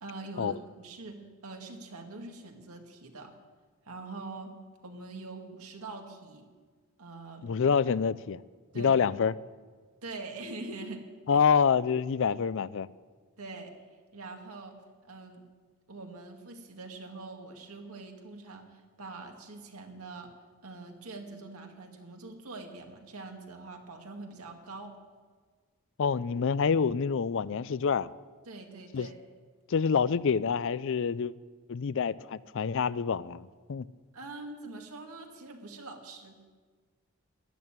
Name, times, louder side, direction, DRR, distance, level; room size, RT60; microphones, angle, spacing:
voice 1, 0.0-3.3 3.9-4.6 4.8-6.5 7.0-7.5 8.7-9.0 10.0-11.0 11.3-11.5 13.4-13.7 14.1-14.8 15.0-15.4 15.9-20.3 20.6-24.9 28.5-29.2 34.1-36.4, right 3 dB, 75° right, 3 dB, 2.0 m, -44 dB
voice 2, 7.4-8.4 8.8-9.3 11.3-12.9 26.0-28.1 28.9-29.1 29.7-31.3 31.7-33.8, left 6 dB, 60° left, 19 dB, 0.4 m, -27 dB
12.5 x 11.0 x 8.9 m, 1.5 s
head